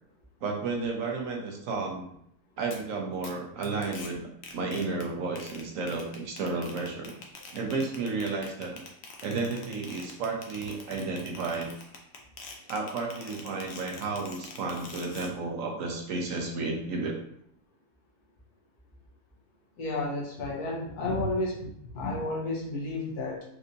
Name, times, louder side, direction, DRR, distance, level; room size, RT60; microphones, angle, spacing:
voice 1, 0.4-2.1 2.6-4.3 4.5-7.1 7.5-8.8 9.2-11.7 12.7-17.2, right 3 dB, 65° right, 1 dB, 1.0 m, -32 dB
sound 1, 2.7-2.8 3.2-3.3 3.6-4.1 4.4-5.0 5.4-15.3, left 4 dB, 60° left, 0.8 m, -45 dB
voice 2, 19.8-23.4, left 2 dB, 90° left, -2 dB, 1.5 m, -32 dB
4.3 x 2.7 x 2.6 m, 0.70 s
omnidirectional pair, 1.6 m